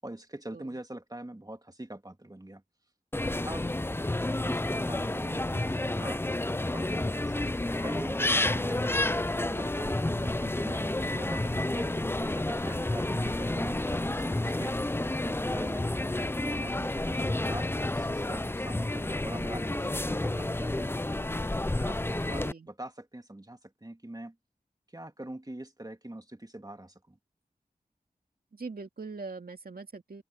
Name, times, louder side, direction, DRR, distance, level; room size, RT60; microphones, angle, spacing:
voice 1, 0.0-2.6 3.4-3.6 4.4-9.0 9.4-14.9 15.2-24.3 24.9-27.2, right 1 dB, 25° right, 2.4 m, -43 dB
sound 1, 3.1-22.5, left 1 dB, 15° left, 0.5 m, -30 dB
voice 2, 28.5-30.2, right 4 dB, 80° right, 2.5 m, -42 dB
open air
wide cardioid pair, 40°, 15 cm